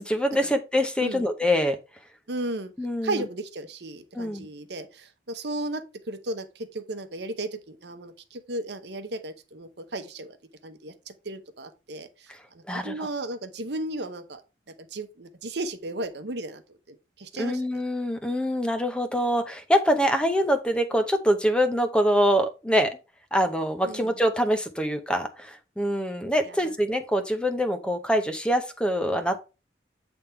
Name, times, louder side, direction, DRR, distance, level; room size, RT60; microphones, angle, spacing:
voice 1, 0.0-1.8 2.8-3.2 4.1-4.5 12.3-12.4 12.7-13.1 17.3-23.0 23.3-29.4, equal, 5° left, 0.6 m, -24 dB
voice 2, 2.3-2.7 3.0-10.4 10.6-12.1 12.5-14.4 14.9-16.6 16.9-17.6 23.8-24.1 26.5-26.6, right 2 dB, 60° right, 0.9 m, -35 dB
8.4 x 3.5 x 4.4 m
head